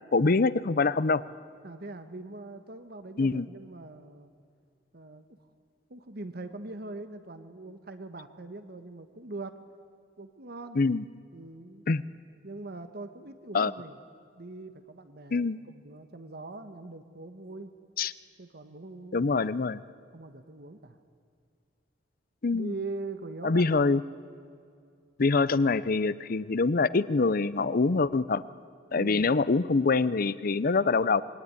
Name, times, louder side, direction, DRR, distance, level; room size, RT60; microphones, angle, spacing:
voice 1, 0.1-1.2 3.2-3.5 10.8-11.0 11.9-12.0 13.5-13.7 15.3-15.6 18.0-18.1 19.1-19.8 22.4-22.7 23.4-24.0 25.2-28.4 28.9-31.2, left 3 dB, 50° left, 17 dB, 0.6 m, -25 dB
voice 2, 1.6-4.3 4.9-5.4 5.9-9.6 10.2-10.8 11.3-11.8 12.4-14.0 14.4-17.7 18.4-19.3 19.7-21.0 22.5-23.8 28.9-29.4, right 2 dB, 55° right, 9 dB, 1.3 m, -42 dB
26.5 x 21.0 x 9.8 m, 2.3 s
head